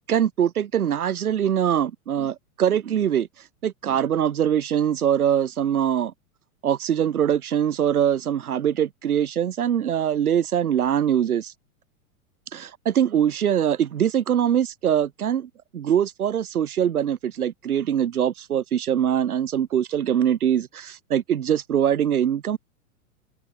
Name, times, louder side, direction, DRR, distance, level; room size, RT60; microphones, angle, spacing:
voice 1, 0.1-3.3 3.6-6.1 6.6-11.5 12.5-22.6, right 9 dB, 80° right, 3.8 m, -23 dB
hypercardioid pair, 110°, 43 cm